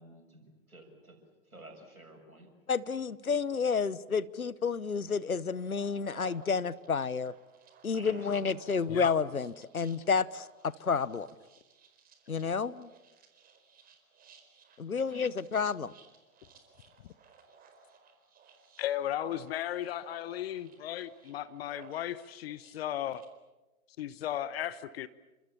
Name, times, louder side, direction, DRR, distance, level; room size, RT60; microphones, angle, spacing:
voice 1, 0.0-2.5 7.9-8.9, right 1 dB, 90° right, 4 dB, 7.1 m, -53 dB
voice 2, 2.7-7.3 7.8-11.3 12.3-12.9 14.8-15.9, left 5 dB, 85° left, 19 dB, 1.1 m, -30 dB
sound 1, 5.6-23.3, right 5 dB, 20° right, 4.6 m, -58 dB
voice 3, 18.8-23.2 24.0-25.1, left 11 dB, 45° left, 16 dB, 1.2 m, -35 dB
30.0 x 26.0 x 7.3 m, 1.1 s
figure-of-eight pair, 110°, 42 cm